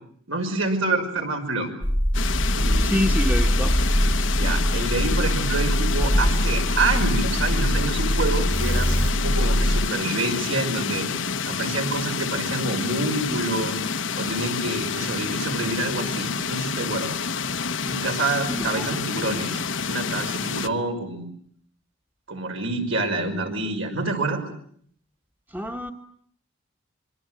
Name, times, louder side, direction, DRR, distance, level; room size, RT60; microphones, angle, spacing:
voice 1, 0.3-1.7 2.5-3.0 4.3-11.1 11.5-13.8 14.2-17.1 17.9-19.6 19.9-21.3 22.3-24.4, right 2 dB, 75° right, 4 dB, 5.5 m, -27 dB
sound 1, 1.8-9.9, equal, 10° left, 1.3 m, -22 dB
sound 2, 2.1-20.7, left 5 dB, 65° left, 1.0 m, -28 dB
voice 2, 2.8-3.8 18.5-19.0 23.2-23.6 25.5-25.9, equal, 10° right, 4 dB, 1.4 m, -28 dB
26.5 x 23.5 x 7.8 m, 0.62 s
head